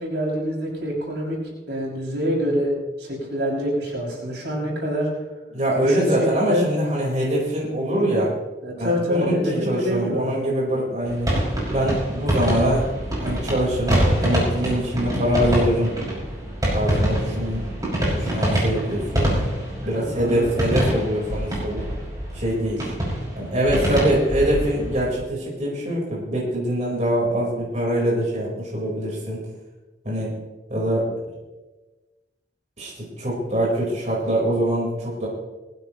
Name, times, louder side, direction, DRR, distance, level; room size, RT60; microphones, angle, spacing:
voice 1, 0.0-1.4 1.7-2.7 3.0-5.1 5.8-6.7 8.6-10.2 19.9-20.5 23.9-24.2, equal, 85° right, -4 dB, 6.2 m, -26 dB
voice 2, 5.5-8.3 8.8-11.3 11.7-15.9 16.7-19.4 19.8-21.9 22.3-22.9 23.4-29.4 30.0-30.3 30.7-31.3 32.8-35.3, right 1 dB, 40° right, -5 dB, 4.3 m, -24 dB
sound 1, 11.1-25.1, right 1 dB, 20° right, 6.0 m, -25 dB
20.0 x 15.5 x 3.1 m, 1.2 s
head